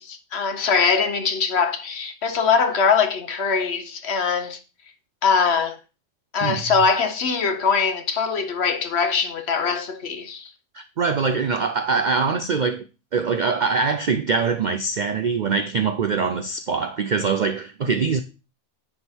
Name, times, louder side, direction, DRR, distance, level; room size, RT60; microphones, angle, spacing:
voice 1, 0.0-4.6 5.2-5.8 6.3-10.5, left 5 dB, 55° left, 1.1 m, -22 dB
voice 2, 10.7-12.8 13.1-18.2, right 5 dB, 85° right, 0.4 m, -23 dB
10.0 x 3.6 x 4.3 m
omnidirectional pair, 1.5 m